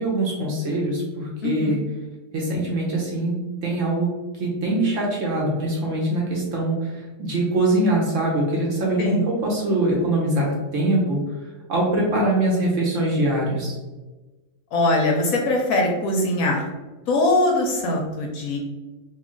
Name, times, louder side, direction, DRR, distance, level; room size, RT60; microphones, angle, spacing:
voice 1, 0.0-1.8 2.3-3.3 3.6-4.1 4.4-6.9 7.2-11.2 11.7-13.8, right 1 dB, 60° right, -2 dB, 0.9 m, -23 dB
voice 2, 1.4-1.8 9.0-9.2 14.7-16.6 17.1-18.6, left 2 dB, 70° left, 1 dB, 0.9 m, -22 dB
3.1 x 2.4 x 3.6 m, 1.2 s
omnidirectional pair, 1.7 m